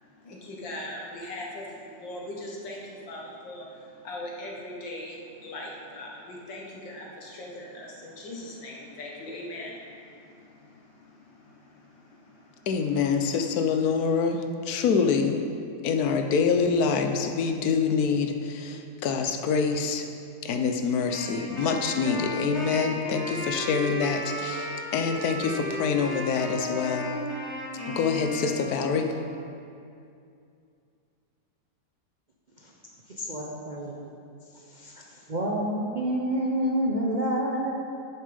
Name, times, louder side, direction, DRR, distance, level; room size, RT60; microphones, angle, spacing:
voice 1, 0.0-12.7 13.2-13.3, left 1 dB, 90° left, -2 dB, 2.2 m, -40 dB
voice 2, 12.7-15.4 15.8-20.0 20.4-27.1 27.8-29.1, left 5 dB, 65° left, 5 dB, 1.2 m, -26 dB
Wind instrument woodwind instrument, 21.1-29.2, left 1 dB, 40° left, 1.6 m, -34 dB
voice 3, 33.1-34.0 34.7-35.0 35.3-37.7, right 1 dB, 45° right, -3 dB, 0.6 m, -28 dB
10.5 x 7.0 x 5.2 m, 2.5 s
omnidirectional pair, 1.9 m